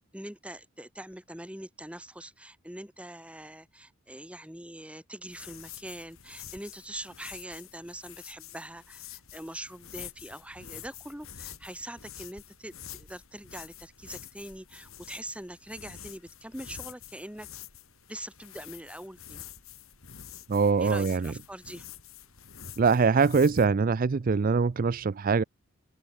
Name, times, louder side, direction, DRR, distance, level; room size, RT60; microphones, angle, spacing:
voice 1, 0.1-17.5 18.1-19.4 20.8-21.9, right 1 dB, 5° right, 1.7 m, -43 dB
sound 1, 5.3-23.7, left 9 dB, 75° left, 4.3 m, -47 dB
voice 2, 20.5-21.3 22.8-25.4, right 5 dB, 40° right, 0.4 m, -23 dB
open air
head